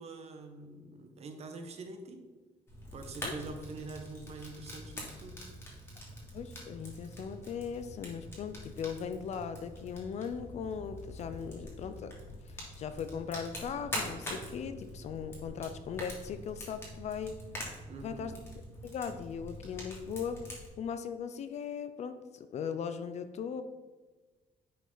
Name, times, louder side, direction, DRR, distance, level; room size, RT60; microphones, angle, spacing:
voice 1, 0.0-2.3 2.9-5.5 17.9-18.4, right 3 dB, 45° right, 5 dB, 1.0 m, -45 dB
Fire, 2.7-20.7, equal, 15° left, 2.0 m, -44 dB
voice 2, 6.3-12.1 12.5-17.4 18.0-18.3 18.8-20.4 20.8-23.6, left 7 dB, 45° left, 10 dB, 0.5 m, -39 dB
10.0 x 5.2 x 4.0 m, 1.3 s
cardioid pair, 180°, 15 cm